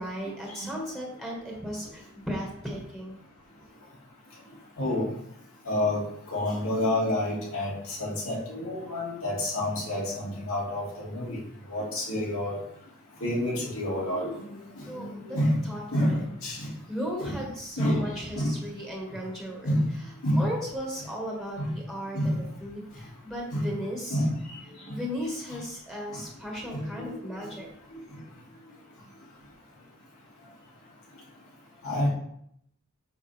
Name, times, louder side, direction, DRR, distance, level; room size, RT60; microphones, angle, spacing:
voice 1, 0.0-3.2 14.9-15.4 15.7-16.2 16.9-19.7 20.4-22.3 22.6-24.2 24.9-27.7, equal, ahead, -3 dB, 1.7 m, -36 dB
voice 2, 5.7-11.4 11.7-12.6 13.2-15.5 15.9-16.7 17.3-17.4 17.8-18.5 18.9-19.0 19.6-19.8 20.2-20.4 21.6-21.7 22.1-22.3 23.5-23.7 24.1-24.3 24.9-25.0 26.1-26.2 26.7-27.2 27.9-28.2 31.8-32.1, left 1 dB, 75° left, -6 dB, 2.9 m, -29 dB
7.8 x 5.2 x 3.6 m, 0.72 s
head